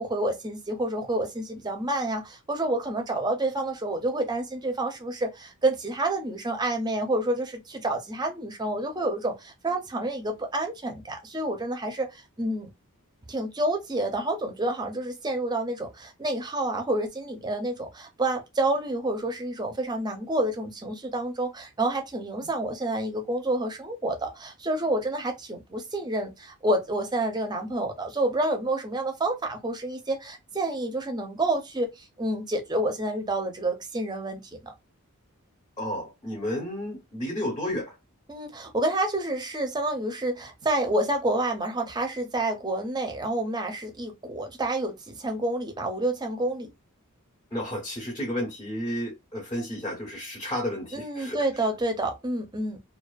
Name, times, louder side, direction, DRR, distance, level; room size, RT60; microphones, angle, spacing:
voice 1, 0.0-12.7 13.3-34.7 38.3-46.7 50.9-52.8, right 1 dB, 20° right, 0.6 m, -29 dB
voice 2, 35.8-37.9 47.5-51.6, equal, 20° left, 0.7 m, -32 dB
2.5 x 2.3 x 2.3 m
head